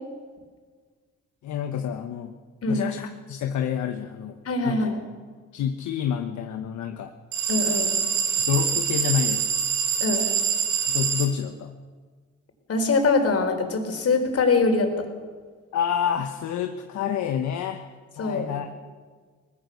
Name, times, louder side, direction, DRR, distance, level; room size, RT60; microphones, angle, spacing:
voice 1, 1.4-2.3 2.7-4.4 4.6-4.9 5.5-7.1 8.4-9.6 10.9-11.7 15.7-17.9 18.2-18.7, left 8 dB, 70° left, 5 dB, 1.3 m, -28 dB
voice 2, 4.4-5.0 7.5-7.9 10.0-10.3 12.7-14.9 18.2-18.5, left 3 dB, 50° left, 4 dB, 4.5 m, -23 dB
sound 1, 7.3-11.3, right 7 dB, 70° right, 4.4 m, -25 dB
23.0 x 19.0 x 6.6 m, 1.5 s
cardioid pair, 90°, 30 cm